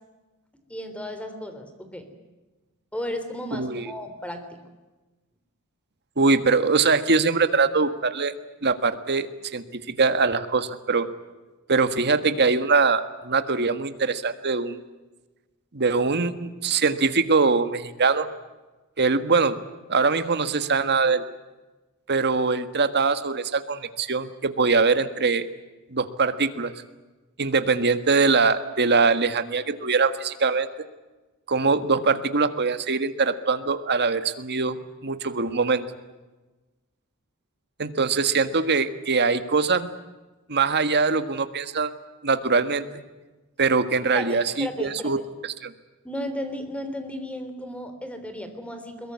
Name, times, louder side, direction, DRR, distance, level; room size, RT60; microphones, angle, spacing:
voice 1, 0.7-2.1 2.9-4.6 44.1-45.1 46.0-49.1, left 1 dB, 5° left, 8 dB, 3.5 m, -34 dB
voice 2, 3.6-3.9 6.2-8.3 8.6-11.1 11.7-14.8 15.7-18.3 19.0-19.6 19.9-21.2 22.1-25.5 25.9-26.7 27.4-30.7 31.5-35.8 37.8-39.9 40.5-41.9 42.2-42.8 43.6-45.2 45.4-45.7, right 4 dB, 50° right, 10 dB, 1.6 m, -22 dB
22.0 x 22.0 x 9.6 m, 1.2 s
head